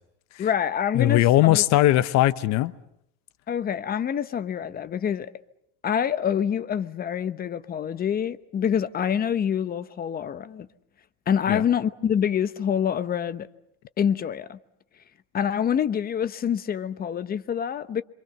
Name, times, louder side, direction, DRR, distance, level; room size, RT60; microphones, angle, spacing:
voice 1, 0.4-1.6 3.5-5.3 5.8-10.7 11.3-13.5 14.0-14.6 15.3-18.0, left 8 dB, 25° left, 1.0 m, -26 dB
voice 2, 0.9-2.7 11.5-11.6, left 15 dB, 50° left, 1.1 m, -19 dB
28.0 x 25.5 x 6.9 m
cardioid pair, 150°, 37 cm